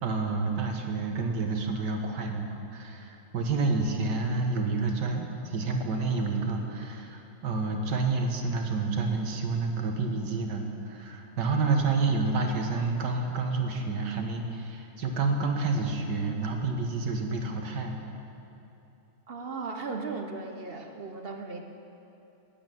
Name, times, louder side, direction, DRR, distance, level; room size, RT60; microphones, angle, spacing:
voice 1, 0.0-18.0, right 3 dB, 70° right, 3 dB, 1.9 m, -29 dB
voice 2, 19.3-21.6, right 4 dB, 45° right, 3 dB, 0.8 m, -36 dB
12.5 x 10.5 x 7.6 m, 2.9 s
omnidirectional pair, 1.9 m